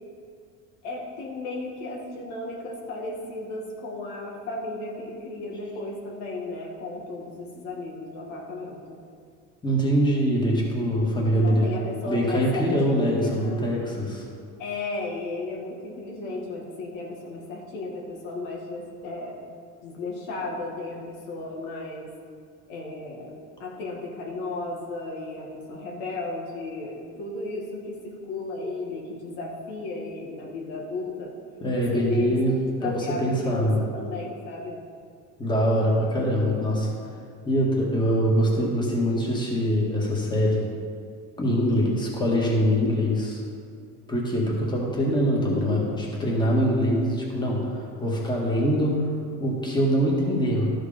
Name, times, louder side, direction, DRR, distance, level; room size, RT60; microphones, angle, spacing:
voice 1, 0.8-9.0 11.4-13.7 14.6-19.4 19.8-22.1 22.7-23.3 23.6-31.3 31.7-32.4 32.8-34.8 45.5-46.0, left 2 dB, 85° left, -2 dB, 2.1 m, -34 dB
voice 2, 9.6-11.7 12.0-14.2 31.6-33.8 35.4-36.9 37.4-40.6 41.4-43.4 44.1-49.0 49.3-50.7, equal, 15° left, -3 dB, 1.9 m, -23 dB
12.5 x 5.1 x 5.1 m, 2.2 s
cardioid pair, 135°, 31 cm